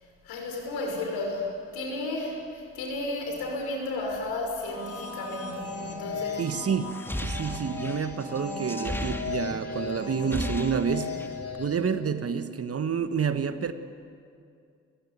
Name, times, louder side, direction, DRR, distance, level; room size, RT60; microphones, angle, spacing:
voice 1, 0.2-6.5, left 2 dB, 65° left, 2 dB, 6.0 m, -33 dB
sound 1, 4.6-11.9, left 4 dB, 35° left, 3.7 m, -37 dB
voice 2, 6.4-11.2 11.6-13.7, right 6 dB, 35° right, 11 dB, 1.5 m, -29 dB
sound 2, 6.8-9.8 10.1-11.4, left 1 dB, 5° left, 2.0 m, -36 dB
28.5 x 16.5 x 9.6 m, 2.4 s
hypercardioid pair, 50°, 39 cm